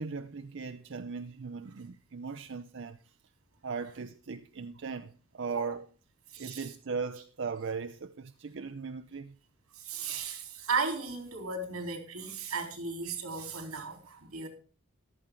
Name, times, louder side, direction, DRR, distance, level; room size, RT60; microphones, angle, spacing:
voice 1, 0.0-3.1 3.6-5.9 6.4-9.4, right 5 dB, 55° right, 0.5 m, -38 dB
voice 2, 6.3-6.7 9.8-14.5, right 4 dB, 85° right, 3.6 m, -35 dB
14.5 x 11.5 x 3.7 m
head